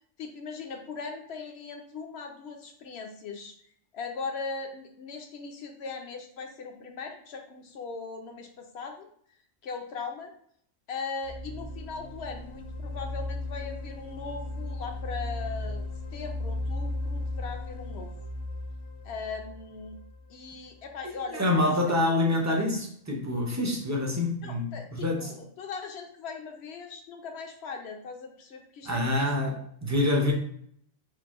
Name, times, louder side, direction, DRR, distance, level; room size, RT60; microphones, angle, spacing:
voice 1, 0.2-3.5 3.9-9.1 9.6-10.3 10.9-15.8 16.1-18.1 19.0-20.0 20.3-21.7 22.5-22.6 24.4-29.3, left 4 dB, 60° left, 4 dB, 0.8 m, -39 dB
sound 1, 11.2-21.0, left 2 dB, 90° left, 1.1 m, -36 dB
voice 2, 21.3-25.3 28.9-30.3, left 2 dB, 20° right, 0 dB, 0.4 m, -26 dB
4.6 x 2.2 x 3.6 m, 0.64 s
omnidirectional pair, 1.3 m